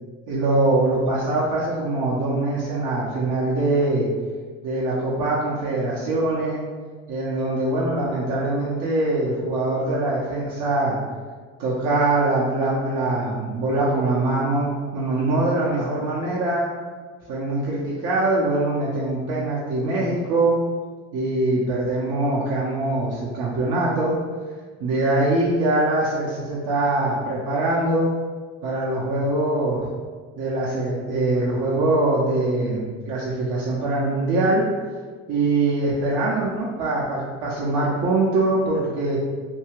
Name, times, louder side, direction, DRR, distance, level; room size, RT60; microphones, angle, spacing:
voice 1, 0.3-4.1 4.6-6.6 7.1-11.0 11.6-16.7 17.3-20.6 21.1-24.2 24.8-28.1 28.6-29.9 30.4-34.7 35.3-39.2, right 2 dB, 60° right, -6 dB, 0.7 m, -23 dB
2.7 x 2.3 x 3.1 m, 1.5 s
supercardioid pair, 75°, 36 cm